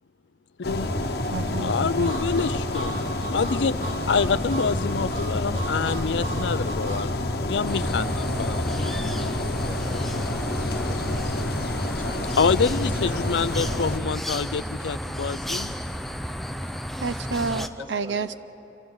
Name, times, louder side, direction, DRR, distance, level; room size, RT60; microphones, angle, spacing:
voice 1, 0.6-0.9 1.6-3.0 3.3-3.8 4.1-7.1 7.4-8.7 12.4-15.7, left 5 dB, 85° left, 15 dB, 0.5 m, -26 dB
sound 1, 0.6-14.0, left 1 dB, 60° left, 1.1 m, -28 dB
voice 2, 1.3-2.1 17.0-18.3, right 4 dB, 90° right, 13 dB, 0.6 m, -30 dB
Harmonica, 2.0-7.1, right 1 dB, 50° right, 4.1 m, -37 dB
sound 2, 7.6-17.7, equal, ahead, 0.5 m, -33 dB
voice 3, 8.9-9.3 9.5-12.5 13.0-13.2 13.6-13.8 17.6-18.4, left 1 dB, 25° right, 2 dB, 1.8 m, -44 dB
29.0 x 25.5 x 4.0 m, 3.0 s
head